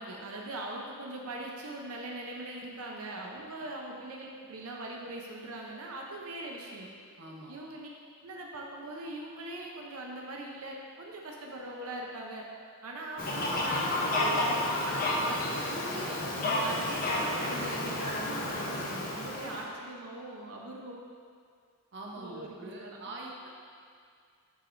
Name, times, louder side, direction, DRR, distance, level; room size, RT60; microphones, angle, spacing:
voice 1, 0.0-6.9 7.5-7.9 8.2-12.5 12.8-21.1 22.2-23.0, right 1 dB, 90° right, -1 dB, 0.7 m, -41 dB
voice 2, 7.2-7.5 21.9-23.5, right 2 dB, 55° right, -2 dB, 0.7 m, -43 dB
sound 1, 11.8-12.4 14.2-15.5 18.0-18.8, equal, 70° left, 1.4 m, -44 dB
Fowl, 13.2-19.6, left 1 dB, 45° left, 0.8 m, -31 dB
7.4 x 5.0 x 2.6 m, 2.1 s
head